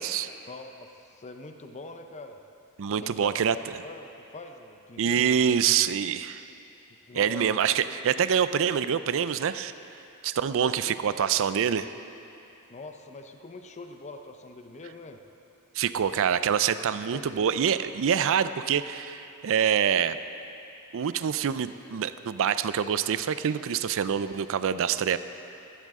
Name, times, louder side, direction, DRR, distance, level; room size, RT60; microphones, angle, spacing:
voice 1, 0.5-2.4 3.0-3.5 3.8-5.7 7.1-7.9 10.5-11.0 12.7-15.2 17.1-17.3, left 2 dB, 30° left, 6 dB, 0.6 m, -43 dB
voice 2, 2.8-3.6 5.0-6.4 7.1-9.7 10.2-11.9 15.8-20.2 20.9-25.2, right 8 dB, 60° right, 13 dB, 0.4 m, -25 dB
15.5 x 13.0 x 3.7 m, 2.8 s
head